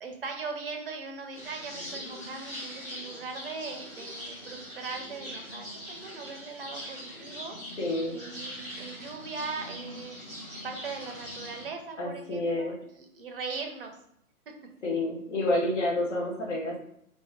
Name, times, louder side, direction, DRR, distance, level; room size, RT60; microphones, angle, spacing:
voice 1, 0.0-7.6 8.1-10.2 10.6-14.0 14.5-14.6, right 4 dB, 40° right, 4 dB, 0.6 m, -39 dB
sound 1, 1.3-11.7, equal, 10° left, 0.6 m, -42 dB
voice 2, 7.8-8.1 12.0-12.7 14.8-16.8, left 1 dB, 50° left, -2 dB, 1.3 m, -29 dB
3.2 x 2.7 x 3.5 m, 0.73 s
figure-of-eight pair, 125°, 44 cm